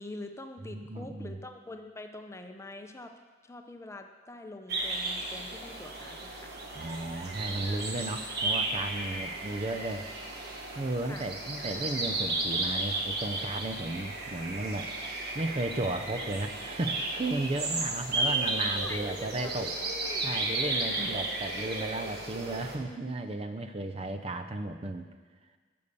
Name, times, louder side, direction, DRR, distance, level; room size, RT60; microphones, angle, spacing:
voice 1, 0.0-3.1 3.4-6.5 9.1-9.3 11.1-11.3 17.7-17.9 18.8-19.9, left 2 dB, 15° left, 5 dB, 0.7 m, -44 dB
voice 2, 0.6-1.4 6.8-10.1 10.8-14.9 15.3-19.7 20.2-25.1, right 2 dB, 30° right, 8 dB, 0.6 m, -34 dB
sound 1, 4.7-22.8, right 2 dB, 55° right, 1.5 m, -34 dB
12.0 x 6.9 x 6.7 m, 1.4 s
head